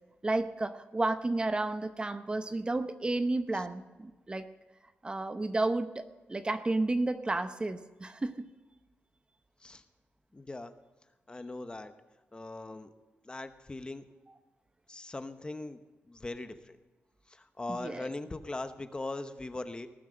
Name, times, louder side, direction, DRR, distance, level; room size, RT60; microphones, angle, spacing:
voice 1, 0.2-4.5 5.0-8.5 17.7-18.1, right 2 dB, 25° right, 10 dB, 0.8 m, -32 dB
voice 2, 10.3-10.7 11.3-11.9 12.3-12.9 13.2-14.0 14.9-15.8 16.1-16.8 17.3-19.9, left 2 dB, 25° left, 10 dB, 0.9 m, -40 dB
19.0 x 7.3 x 6.4 m, 1.2 s
cardioid pair, 90°, 4 cm